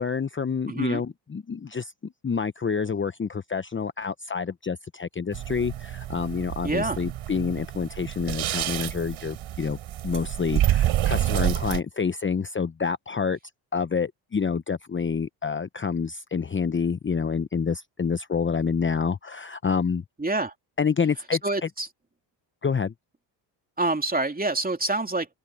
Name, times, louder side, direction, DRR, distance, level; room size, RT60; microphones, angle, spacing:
voice 1, 0.0-9.8 10.0-13.4 13.7-20.0 20.8-21.7 22.6-22.9, left 6 dB, 25° left, 1.0 m, -28 dB
voice 2, 0.7-1.0 6.6-7.0 20.2-20.5 21.4-21.9 23.8-25.3, right 2 dB, 15° right, 2.8 m, -26 dB
sound 1, 5.3-11.8, right 12 dB, 70° right, 5.6 m, -28 dB
open air
supercardioid pair, 65°, 49 cm